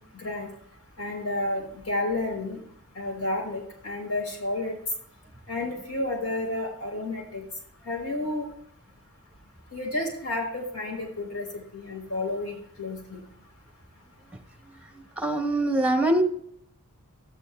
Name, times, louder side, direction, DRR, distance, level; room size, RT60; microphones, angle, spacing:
voice 1, 0.1-0.5 1.0-2.6 2.9-4.7 5.5-7.4 7.8-8.5 9.7-13.2, left 2 dB, 90° left, 1 dB, 3.4 m, -31 dB
voice 2, 15.2-16.2, right 1 dB, 5° right, 3 dB, 1.0 m, -23 dB
13.5 x 9.6 x 2.2 m, 0.70 s
head